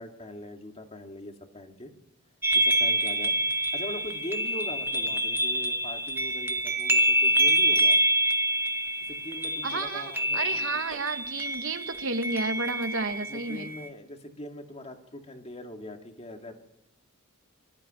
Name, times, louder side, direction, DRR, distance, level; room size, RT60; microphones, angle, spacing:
voice 1, 0.0-1.9 2.5-3.4 3.7-8.0 9.1-10.8 13.3-16.6, left 1 dB, 30° left, 4 dB, 2.1 m, -41 dB
sound 1, 2.4-13.9, right 1 dB, 10° right, 1.1 m, -26 dB
voice 2, 9.6-13.7, right 3 dB, 60° right, 7 dB, 1.3 m, -32 dB
20.0 x 13.5 x 10.0 m, 0.87 s
head